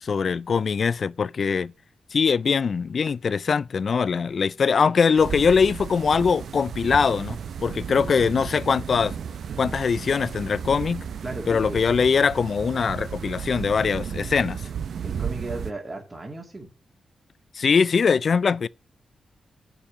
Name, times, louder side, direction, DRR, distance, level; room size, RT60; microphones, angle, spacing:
voice 1, 0.0-1.7 2.1-9.1 9.6-11.1 11.5-14.6 17.5-18.7, left 5 dB, 55° left, 0.3 m, -22 dB
sound 1, 5.2-15.7, right 7 dB, 75° right, 0.6 m, -34 dB
voice 2, 11.2-11.8 15.0-16.7, right 2 dB, 25° right, 2.2 m, -35 dB
7.1 x 5.4 x 7.3 m
cardioid pair, 90°, 0 cm